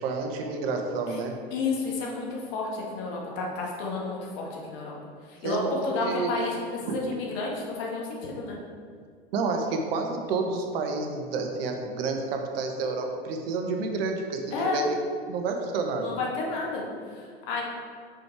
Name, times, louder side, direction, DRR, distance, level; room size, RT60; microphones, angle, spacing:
voice 1, 0.0-1.3 5.4-6.3 9.3-14.9 15.3-16.1, right 4 dB, 65° right, 3 dB, 1.2 m, -29 dB
voice 2, 1.5-4.9 5.2-8.6 14.5-14.9 16.0-17.6, left 3 dB, 55° left, -2 dB, 2.0 m, -31 dB
6.4 x 5.3 x 4.7 m, 2.1 s
hypercardioid pair, 95°, 32 cm